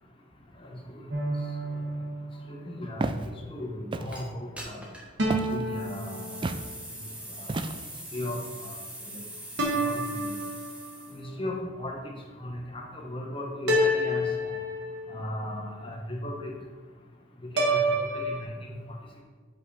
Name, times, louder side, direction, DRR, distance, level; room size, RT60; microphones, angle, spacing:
voice 1, 0.6-1.1 2.5-4.8 5.5-6.5 7.4-7.6 8.1-8.8 9.1-9.2 9.8-10.3 11.1-12.0 12.4-14.3 15.1-16.5 17.5-18.5, left 1 dB, 30° left, 0 dB, 1.2 m, -36 dB
sound 1, 1.1-2.8 5.2-6.9 9.6-11.1 13.7-15.3 17.6-18.4, equal, 65° right, 1.4 m, -29 dB
Walk footsteps, 3.0-3.3 3.9-4.3 5.3-5.6 6.4-6.7 7.5-8.0, right 2 dB, 25° right, 0.3 m, -31 dB
sound 2, 4.1-4.2 4.6-5.1 5.6-11.2, right 1 dB, 5° right, 1.2 m, -42 dB
7.7 x 5.3 x 4.3 m, 1.5 s
head